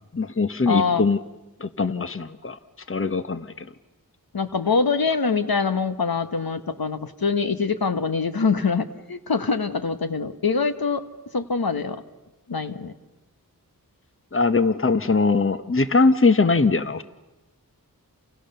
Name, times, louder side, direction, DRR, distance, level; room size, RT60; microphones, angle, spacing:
voice 1, 0.1-1.2 1.6-2.6 2.9-3.7 14.3-17.0, left 3 dB, 35° left, 12 dB, 1.1 m, -21 dB
voice 2, 0.7-1.1 4.3-11.0 11.3-12.0 12.5-12.9, left 5 dB, 75° left, 10 dB, 1.4 m, -24 dB
30.0 x 29.0 x 6.8 m, 1.0 s
wide cardioid pair, 60°, 36 cm